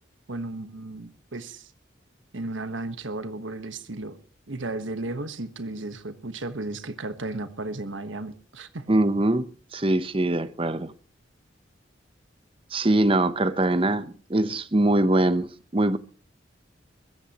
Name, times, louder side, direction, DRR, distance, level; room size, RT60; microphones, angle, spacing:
voice 1, 0.3-1.7 2.3-4.2 4.5-8.9, right 2 dB, 80° right, 1.3 m, -34 dB
voice 2, 8.9-10.9 12.7-16.0, right 1 dB, 25° right, 0.8 m, -23 dB
22.5 x 15.0 x 3.0 m
head